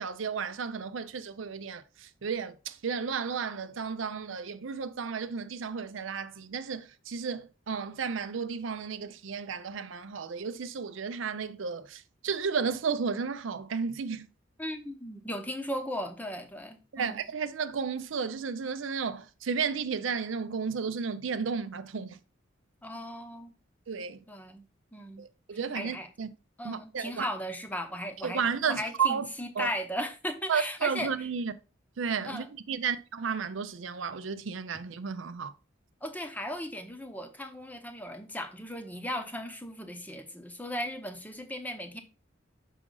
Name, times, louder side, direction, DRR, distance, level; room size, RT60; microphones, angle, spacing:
voice 1, 0.0-14.3 16.9-22.2 23.9-24.2 25.2-26.3 26.6-27.3 28.2-29.3 29.6-29.7 30.5-31.5 32.0-35.5, right 6 dB, 80° right, 0.5 m, -33 dB
voice 2, 14.6-17.2 22.8-23.5 24.3-24.6 24.9-25.2 25.7-26.1 26.6-28.4 28.7-31.1 32.2-32.5 36.0-42.0, equal, 10° left, 0.7 m, -37 dB
6.1 x 5.0 x 3.8 m
head